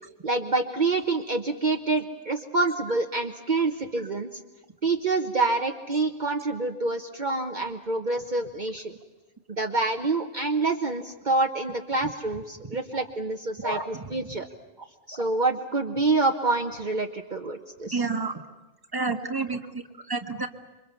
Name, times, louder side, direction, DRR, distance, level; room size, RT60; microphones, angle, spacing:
voice 1, 0.2-4.3 4.8-8.9 9.6-14.5 15.1-18.1, right 3 dB, 45° right, 5 dB, 1.3 m, -27 dB
voice 2, 13.6-14.1 15.1-15.3 17.9-18.4 18.9-20.5, right 3 dB, 20° right, 6 dB, 1.6 m, -30 dB
28.0 x 24.5 x 7.1 m, 1.1 s
omnidirectional pair, 1.2 m